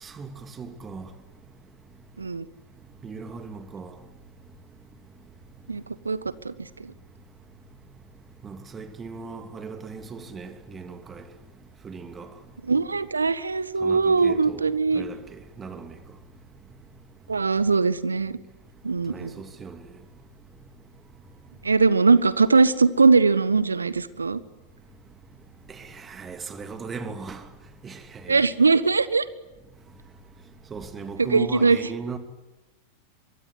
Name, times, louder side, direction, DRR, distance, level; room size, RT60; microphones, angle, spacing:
voice 1, 0.0-1.1 3.0-3.9 8.4-11.2 11.8-12.3 13.8-14.7 14.9-16.0 19.1-19.8 25.7-27.4 27.8-28.4 30.7-32.2, right 5 dB, 20° right, 2.7 m, -38 dB
voice 2, 5.7-6.9 12.6-15.0 17.3-18.4 18.8-19.4 21.6-24.4 28.3-29.2 31.2-31.8, right 4 dB, 75° right, 1.3 m, -21 dB
24.5 x 23.0 x 9.7 m
figure-of-eight pair, 90°, 0 cm